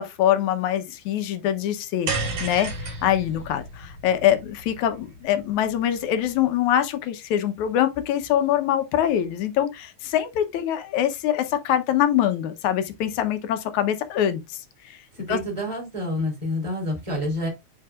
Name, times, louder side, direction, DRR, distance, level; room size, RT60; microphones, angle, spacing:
voice 1, 0.0-2.1 2.4-14.4 14.9-15.0 15.3-15.4, left 11 dB, 70° left, 2.1 m, -24 dB
sound 1, 2.1-6.5, right 3 dB, 60° right, 3.8 m, -33 dB
voice 2, 15.1-17.5, left 1 dB, 10° right, 3.2 m, -28 dB
9.6 x 4.6 x 2.4 m
omnidirectional pair, 3.8 m